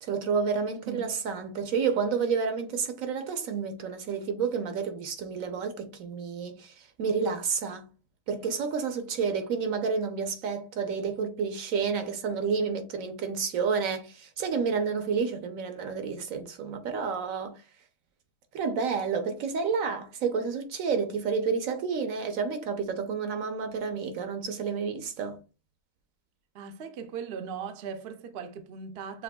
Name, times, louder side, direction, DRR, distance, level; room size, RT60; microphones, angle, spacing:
voice 1, 0.0-7.8 8.3-17.6 18.5-25.4, right 5 dB, 75° right, 1.1 m, -30 dB
voice 2, 26.5-29.2, right 7 dB, 60° right, 0.7 m, -38 dB
6.8 x 3.0 x 2.2 m
omnidirectional pair, 1.4 m